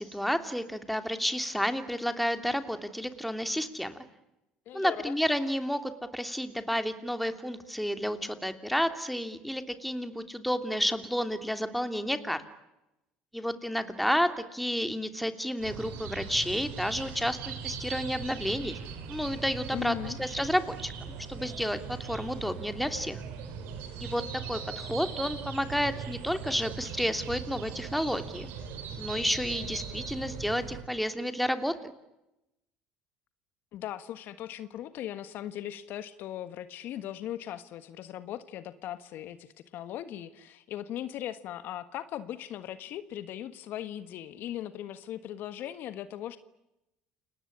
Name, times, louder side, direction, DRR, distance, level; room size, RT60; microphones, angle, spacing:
voice 1, 0.0-4.0 4.7-12.4 13.3-18.8 19.1-23.2 24.0-28.5 29.0-31.7, equal, ahead, 9 dB, 3.0 m, -31 dB
voice 2, 4.6-5.2 19.7-20.2 33.7-46.4, left 12 dB, 60° left, 13 dB, 1.5 m, -39 dB
sound 1, 15.6-30.8, right 6 dB, 70° right, 4.9 m, -40 dB
29.5 x 19.0 x 10.0 m, 0.90 s
hypercardioid pair, 75°, 4 cm